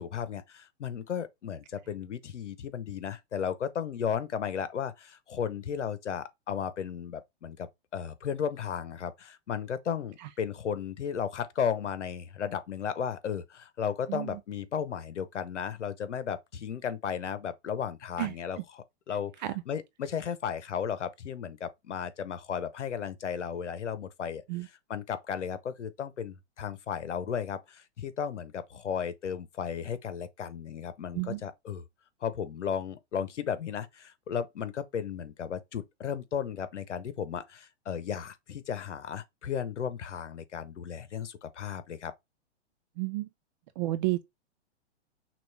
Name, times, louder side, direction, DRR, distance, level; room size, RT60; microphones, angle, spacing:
voice 1, 0.0-19.3 19.7-31.8 32.2-42.1, left 8 dB, 90° left, 0.9 m, -35 dB
voice 2, 14.1-14.4 18.2-18.3 19.4-19.5 24.5-24.7 31.1-31.4 43.0-43.3 43.8-44.2, right 17 dB, 40° right, 0.5 m, -31 dB
6.1 x 2.5 x 3.4 m
hypercardioid pair, 135°, 35 cm